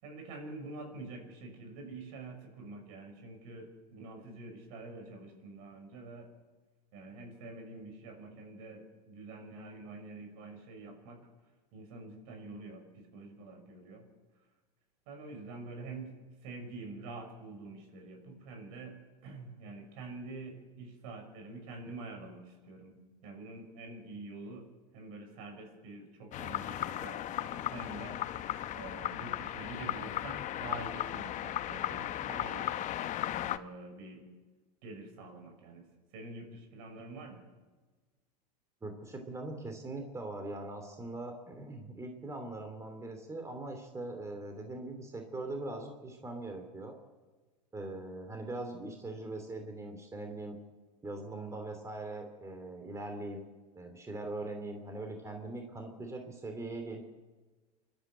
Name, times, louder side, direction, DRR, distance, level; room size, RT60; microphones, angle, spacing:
voice 1, 0.0-6.3 6.9-11.2 11.7-14.1 15.1-23.0 23.2-24.7 24.9-28.2 28.7-32.8 33.4-34.3 34.8-35.8 36.1-37.4, right 3 dB, 60° right, 4 dB, 6.3 m, -46 dB
sound 1, 26.3-33.6, left 12 dB, 35° left, 1.0 m, -36 dB
voice 2, 38.8-46.9 47.7-50.6 51.0-53.5 53.7-57.0, right 2 dB, 15° right, 4 dB, 3.1 m, -41 dB
28.0 x 12.5 x 8.1 m, 1.3 s
hypercardioid pair, 95°, 21 cm